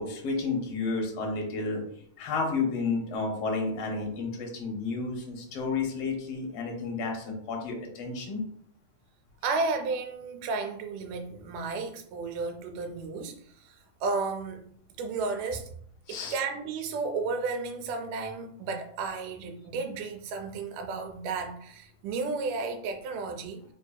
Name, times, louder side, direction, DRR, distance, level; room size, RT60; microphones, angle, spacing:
voice 1, 0.0-1.8 2.2-8.4 16.1-16.4, left 4 dB, 70° left, 1 dB, 1.5 m, -31 dB
voice 2, 9.4-14.6 15.0-15.7 16.1-23.6, right 4 dB, 90° right, 5 dB, 2.1 m, -33 dB
4.7 x 2.6 x 2.2 m, 0.65 s
omnidirectional pair, 3.5 m